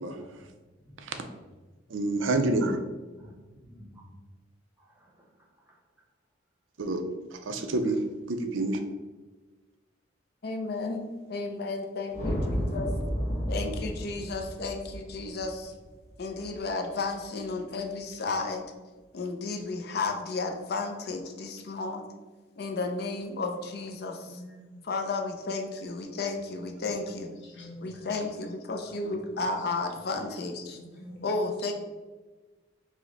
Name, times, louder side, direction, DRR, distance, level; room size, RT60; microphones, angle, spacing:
voice 1, 0.1-0.4 0.8-0.9 2.2-2.4 3.2-4.2 4.8-5.8 27.9-28.0 28.8-28.9 30.2-30.3, equal, 10° right, -3 dB, 0.7 m, -54 dB
voice 2, 1.9-2.8 6.8-7.0 7.3-8.0 8.3-8.8, right 2 dB, 90° right, 7 dB, 0.5 m, -28 dB
voice 3, 10.4-12.9 13.5-15.7 16.2-18.7 19.1-22.1 22.6-24.4 24.8-27.3 27.8-30.8 31.2-31.7, left 3 dB, 55° left, 3 dB, 0.5 m, -33 dB
sound 1, 12.1-16.5, equal, 40° left, 0.9 m, -32 dB
voice 4, 24.2-24.8 26.8-28.2 29.2-29.5 30.7-31.7, equal, 70° left, -1 dB, 1.0 m, -46 dB
4.9 x 2.1 x 3.8 m, 1.2 s
head